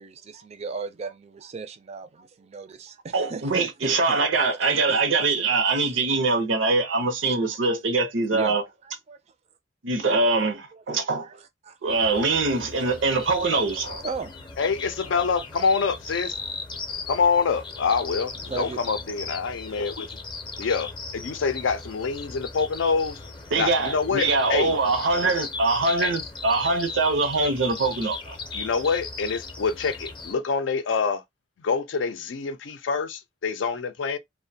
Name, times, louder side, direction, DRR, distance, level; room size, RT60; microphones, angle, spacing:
voice 1, 0.0-4.2 4.6-4.7 5.8-6.0 7.2-7.6 8.3-8.6 9.1-9.2 10.2-10.3 10.7-11.4 11.6-11.8 12.2-12.3 13.6-14.3 16.4-16.5 18.5-18.8, right 4 dB, 35° right, 0.4 m, -37 dB
voice 2, 3.1-8.6 9.8-11.3 11.8-14.0 23.5-28.4, right 3 dB, 85° right, 0.6 m, -23 dB
sound 1, 11.9-30.3, left 4 dB, 25° left, 0.6 m, -38 dB
voice 3, 14.6-16.3 17.1-20.1 20.6-23.2 23.6-24.7 26.0-26.1 28.5-31.2 31.6-34.2, left 5 dB, 75° left, 0.4 m, -26 dB
2.5 x 2.1 x 2.6 m
head